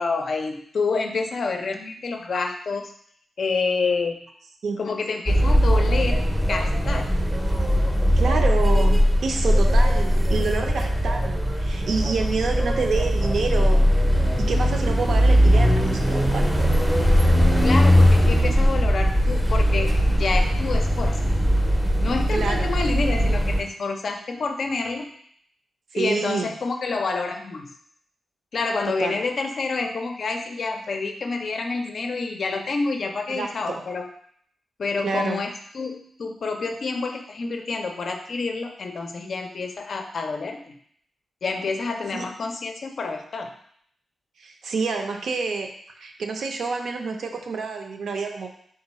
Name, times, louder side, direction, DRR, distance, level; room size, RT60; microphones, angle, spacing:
voice 1, 0.0-2.9 3.4-4.2 4.8-7.1 17.6-21.3 22.0-25.1 25.9-27.7 28.5-34.1 34.8-40.8 41.4-43.5, left 4 dB, 60° left, 4 dB, 0.4 m, -28 dB
sound 1, 5.3-23.6, equal, 10° right, 0.5 m, -20 dB
voice 2, 8.2-14.0 14.4-16.7 22.3-22.7 25.9-26.5 29.0-29.2 33.3-33.8 35.0-35.4 42.1-42.3 44.4-45.7 46.0-48.5, right 4 dB, 75° right, 3 dB, 0.5 m, -28 dB
3.7 x 2.2 x 4.1 m, 0.65 s
wide cardioid pair, 110°, 0 cm